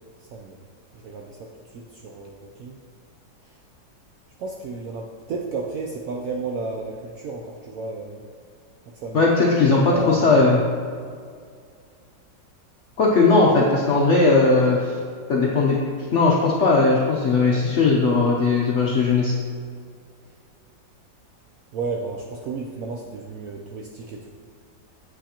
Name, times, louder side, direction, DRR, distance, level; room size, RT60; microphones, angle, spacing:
voice 1, 0.2-0.6 0.9-1.5 1.7-2.8 3.4-3.5 4.4-8.2 8.9-9.3 9.9-10.5 21.7-24.3, right 3 dB, 75° right, -1 dB, 0.8 m, -32 dB
voice 2, 9.1-10.6 13.0-14.9 15.3-15.8 16.1-19.3, left 3 dB, 70° left, -3 dB, 0.7 m, -18 dB
7.8 x 5.8 x 2.8 m, 2.1 s
omnidirectional pair, 2.0 m